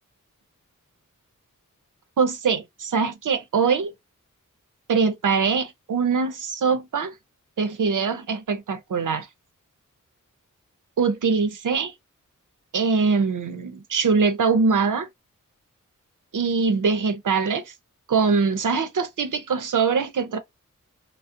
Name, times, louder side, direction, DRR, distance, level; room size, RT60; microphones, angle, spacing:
voice 1, 2.2-3.9 4.9-7.1 7.6-9.3 11.0-11.9 12.7-15.1 16.3-17.7 18.1-20.4, right 5 dB, 70° right, 0.6 m, -23 dB
2.4 x 2.0 x 2.5 m
wide cardioid pair, 50°, 32 cm